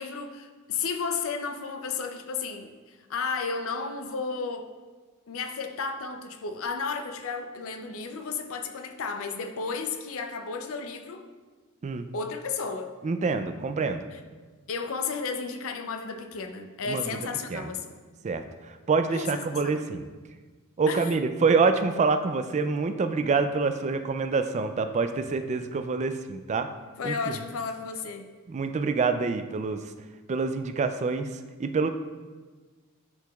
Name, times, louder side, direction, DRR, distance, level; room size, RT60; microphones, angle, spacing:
voice 1, 0.0-4.7 5.3-11.3 12.1-12.9 14.1-14.2 14.7-17.9 19.1-19.8 20.9-21.2 27.0-28.3, left 5 dB, 65° left, 7 dB, 0.5 m, -33 dB
voice 2, 13.0-14.0 16.9-17.0 17.5-17.7 18.2-18.4 18.9-20.0 20.8-26.7 27.0-27.2 28.5-29.8 30.3-31.3 31.6-31.9, right 4 dB, 30° right, 8 dB, 0.3 m, -26 dB
10.5 x 4.7 x 2.3 m, 1.4 s
head